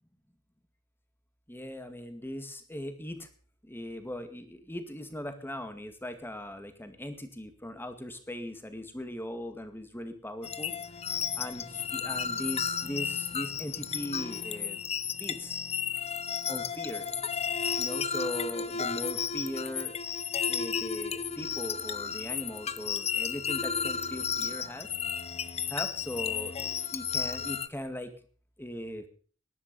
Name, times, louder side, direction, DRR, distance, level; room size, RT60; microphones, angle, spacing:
voice 1, 1.5-3.2 3.7-10.7 11.4-14.8 15.2-15.6 16.5-17.0 17.8-19.9 20.5-24.9 25.7-26.5 26.9-28.1 28.6-29.1, left 1 dB, 10° left, 8 dB, 2.2 m, -39 dB
sound 1, 10.4-27.7, left 7 dB, 30° left, 0.7 m, -33 dB
18.5 x 11.5 x 5.4 m, 0.42 s
head